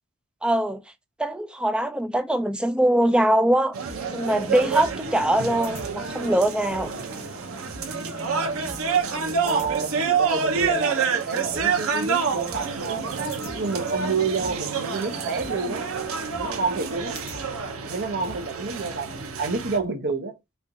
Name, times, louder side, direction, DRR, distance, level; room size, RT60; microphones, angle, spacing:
voice 1, 0.4-0.8 1.2-3.8 4.1-6.9, right 1 dB, 5° right, 0.3 m, -22 dB
sound 1, 3.7-19.8, right 5 dB, 85° right, 0.7 m, -28 dB
sound 2, 3.8-19.2, left 2 dB, 30° left, 1.3 m, -43 dB
voice 2, 9.4-15.8 16.4-17.2 17.8-20.3, right 4 dB, 55° right, 0.7 m, -29 dB
4.3 x 2.4 x 2.6 m
head